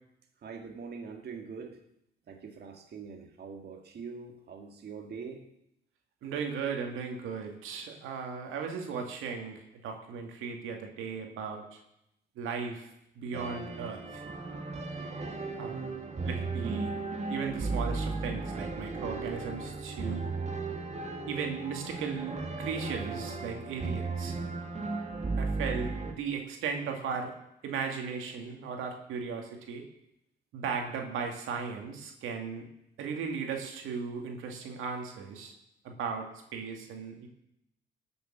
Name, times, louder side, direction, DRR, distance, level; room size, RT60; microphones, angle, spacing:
voice 1, 0.4-1.8 2.3-5.5 15.4-15.6 24.8-24.9, right 5 dB, 55° right, 2 dB, 2.0 m, -43 dB
voice 2, 6.2-11.8 12.4-12.9 13.2-14.2 15.6-16.9 17.3-20.3 21.3-24.3 25.4-27.3 27.6-29.8 30.5-32.7 33.0-35.5 35.8-37.3, right 5 dB, 90° right, 3 dB, 2.3 m, -36 dB
sound 1, 13.3-26.1, right 3 dB, 35° right, 2.1 m, -35 dB
18.0 x 7.0 x 7.4 m, 0.81 s
cardioid pair, 90°, 20 cm